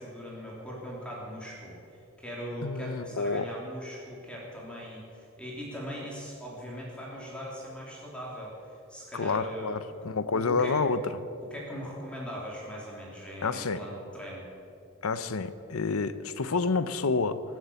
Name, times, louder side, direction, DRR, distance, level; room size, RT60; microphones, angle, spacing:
voice 1, 0.0-1.8 2.2-9.8 10.3-10.8 11.5-14.5, equal, 5° left, -5 dB, 3.4 m, -40 dB
voice 2, 2.6-3.5 9.1-11.0 13.4-13.8 15.0-17.4, left 4 dB, 90° left, 13 dB, 0.8 m, -29 dB
23.5 x 8.0 x 7.0 m, 2.6 s
head